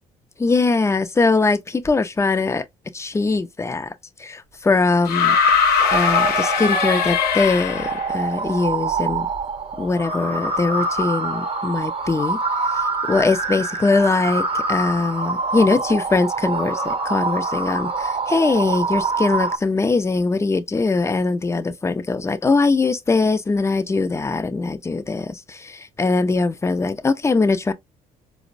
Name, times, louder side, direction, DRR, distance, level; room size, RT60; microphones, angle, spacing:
voice 1, 0.4-2.6 2.9-3.9 4.2-4.4 4.6-5.4 5.9-7.9 8.1-9.3 9.8-12.4 13.1-16.8 17.1-25.3 26.0-27.7, left 3 dB, 15° left, 0.5 m, -21 dB
sound 1, 5.0-8.1 9.4-9.5, left 6 dB, 80° left, 0.7 m, -20 dB
sound 2, 5.8-19.6, right 3 dB, 40° right, 0.8 m, -25 dB
4.2 x 2.0 x 2.5 m
cardioid pair, 85°, 16 cm